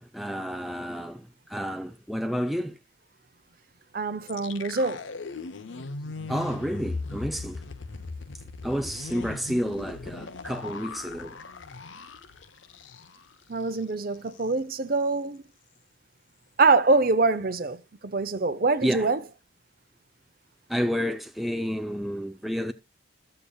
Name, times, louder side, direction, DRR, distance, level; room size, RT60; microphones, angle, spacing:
voice 1, 0.0-2.8 6.3-7.6 8.6-11.4 18.8-19.1 20.7-22.7, equal, ahead, 0.3 m, -30 dB
voice 2, 3.9-5.0 13.5-15.4 16.6-17.8 18.0-19.2, right 3 dB, 45° right, 0.6 m, -24 dB
sound 1, 4.3-13.3 13.6-13.8 14.1-14.5, left 3 dB, 75° left, 0.7 m, -39 dB
14.0 x 6.7 x 2.3 m
head